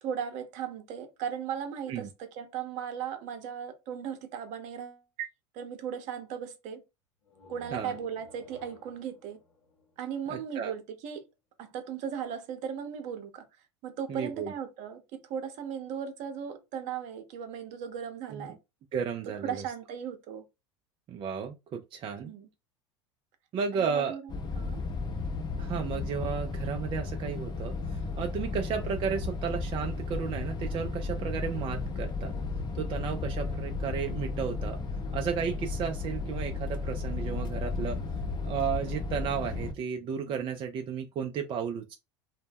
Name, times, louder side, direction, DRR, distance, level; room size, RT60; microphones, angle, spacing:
voice 1, 0.0-5.3 5.5-6.8 7.5-9.4 10.0-11.2 11.6-13.4 13.8-15.0 15.3-18.6 19.4-20.4 22.2-22.5 23.7-24.8 28.3-28.6 38.8-39.0 40.2-40.5, right 8 dB, 55° right, 0.7 m, -37 dB
sound 1, 7.2-10.9, left 2 dB, 90° left, 0.8 m, -54 dB
voice 2, 10.3-10.7 14.1-14.5 18.3-18.5 18.9-19.5 21.1-22.3 23.5-24.2 25.6-32.3 32.7-34.8 35.1-38.0 38.4-42.0, right 7 dB, 35° right, 0.3 m, -33 dB
sound 2, 24.3-39.7, left 3 dB, 30° left, 0.6 m, -34 dB
2.1 x 2.0 x 3.4 m
hypercardioid pair, 85°, 15 cm